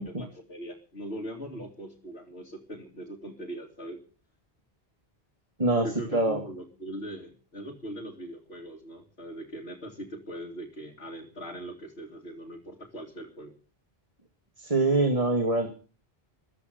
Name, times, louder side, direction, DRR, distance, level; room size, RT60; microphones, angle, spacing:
voice 1, 0.0-4.0 5.8-13.6, right 1 dB, 85° left, -3 dB, 3.0 m, -40 dB
voice 2, 14.6-15.7, right 2 dB, 35° right, 6 dB, 2.3 m, -24 dB
15.0 x 13.5 x 6.7 m, 0.37 s
omnidirectional pair, 1.0 m